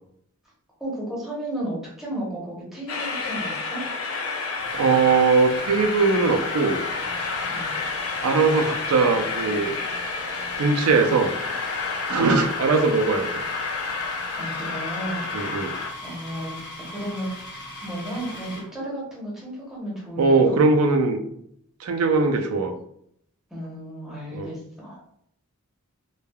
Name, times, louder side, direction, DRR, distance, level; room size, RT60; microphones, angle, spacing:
voice 1, 0.8-3.8 7.5-7.8 12.2-12.4 14.4-15.2 16.0-17.3 17.8-20.6 23.5-25.0, right 1 dB, ahead, -6 dB, 0.8 m, -33 dB
Train, 2.9-15.9, left 4 dB, 65° left, 0.5 m, -30 dB
sound 1, 3.4-3.5 4.6-18.7, left 1 dB, 50° left, 0.9 m, -40 dB
voice 2, 4.8-6.8 8.2-9.7 10.6-11.3 12.1-13.4 15.3-15.8 20.2-21.2 21.8-22.7 24.3-24.5, right 4 dB, 75° right, 6 dB, 0.4 m, -20 dB
3.2 x 2.2 x 2.2 m, 0.72 s
head